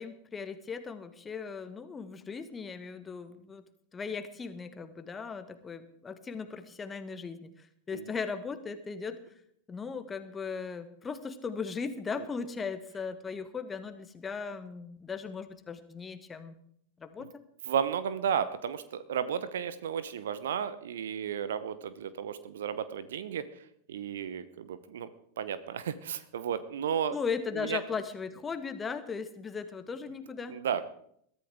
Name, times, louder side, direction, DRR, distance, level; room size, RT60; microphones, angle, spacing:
voice 1, 0.0-3.6 3.9-9.2 9.7-16.5 17.0-17.4 27.1-30.6, left 5 dB, 15° left, 10 dB, 1.5 m, -38 dB
voice 2, 17.7-23.4 23.9-25.1 25.4-27.2 27.5-27.8 30.5-30.9, right 8 dB, 60° right, 14 dB, 0.9 m, -33 dB
22.0 x 13.5 x 3.6 m, 0.66 s
figure-of-eight pair, 90°, 0 cm